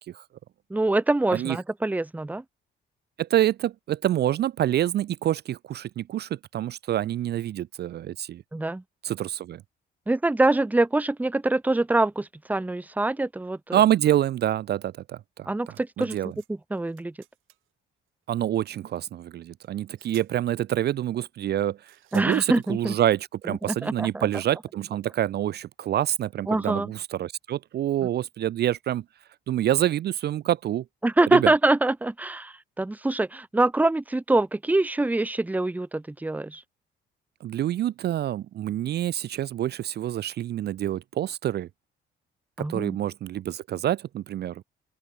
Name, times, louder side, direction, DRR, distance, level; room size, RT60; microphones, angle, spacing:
voice 1, 0.7-2.4 8.5-8.8 10.1-13.8 15.5-16.2 16.5-17.1 22.1-22.9 23.6-24.3 26.5-26.9 31.0-36.6 42.6-43.0, right 2 dB, 10° right, 0.7 m, -24 dB
voice 2, 3.2-8.4 9.0-9.6 13.7-15.5 16.0-16.3 18.3-29.0 29.5-30.8 31.3-31.5 37.4-41.7 42.6-44.6, right 12 dB, 55° right, 0.4 m, -27 dB
sound 1, 15.6-16.5 16.8-17.7 18.7-18.8 19.6-19.7 20.0-20.3 21.9-22.7 24.3-24.4, right 16 dB, 90° right, 2.8 m, -55 dB
open air
cardioid pair, 90°, 20 cm